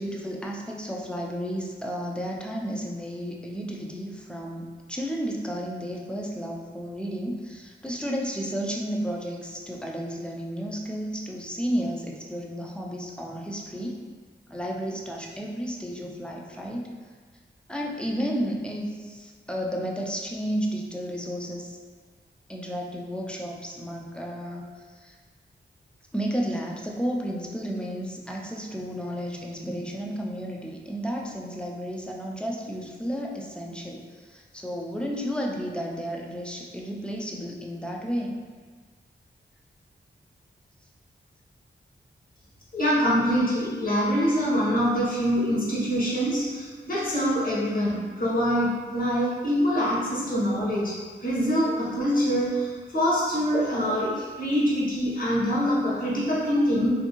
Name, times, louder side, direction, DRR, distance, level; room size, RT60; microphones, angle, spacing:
voice 1, 0.0-14.0 14.5-16.9 17.7-21.8 22.5-25.2 26.1-38.4, equal, 5° left, -1 dB, 0.3 m, -32 dB
voice 2, 42.7-56.9, equal, 45° left, -6 dB, 0.9 m, -25 dB
2.6 x 2.5 x 2.9 m, 1.5 s
wide cardioid pair, 105°, 19 cm